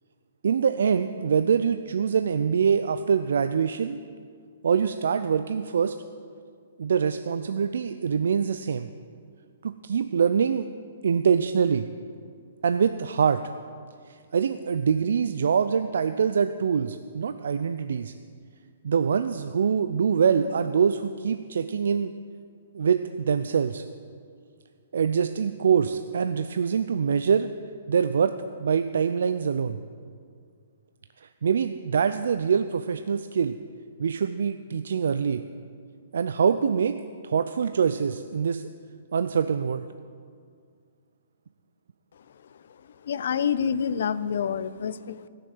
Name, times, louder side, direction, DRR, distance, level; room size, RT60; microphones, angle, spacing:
voice 1, 0.4-4.0 4.6-6.0 6.8-8.9 9.6-10.7 11.0-11.9 12.6-13.4 14.1-18.1 18.8-22.1 22.7-23.8 24.9-27.5 27.9-28.3 28.6-29.8 31.2-33.6 34.0-35.4 36.1-37.0 37.2-38.7 39.1-39.9, right 6 dB, 75° right, 10 dB, 0.4 m, -24 dB
voice 2, 43.0-45.3, left 7 dB, 65° left, 16 dB, 0.6 m, -27 dB
15.0 x 6.7 x 7.8 m, 2.2 s
hypercardioid pair, 130°, 0 cm